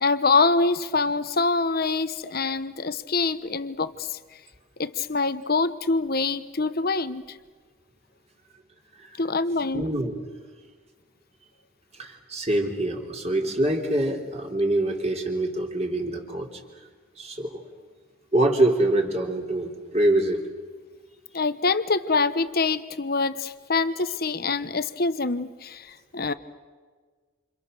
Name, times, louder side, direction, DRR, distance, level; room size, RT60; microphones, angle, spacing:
voice 1, 0.0-4.2 4.8-7.4 9.2-9.8 21.3-26.3, left 3 dB, 50° left, 12 dB, 1.1 m, -25 dB
voice 2, 9.7-10.2 11.9-16.5 17.2-17.6 18.3-20.4, right 1 dB, 30° right, 1 dB, 3.7 m, -25 dB
29.0 x 28.5 x 6.8 m, 1.5 s
head